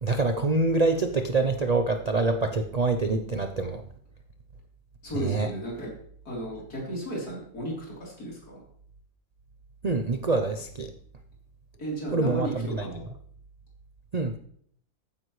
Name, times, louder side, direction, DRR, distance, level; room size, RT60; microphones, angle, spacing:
voice 1, 0.0-3.8 5.1-5.5 9.8-10.9 12.1-12.8 14.1-14.4, right 3 dB, 85° right, 7 dB, 0.3 m, -25 dB
voice 2, 5.0-5.9 6.3-8.6 11.8-13.0, right 1 dB, 65° left, -4 dB, 4.2 m, -34 dB
14.5 x 9.1 x 3.2 m, 0.64 s
omnidirectional pair, 1.7 m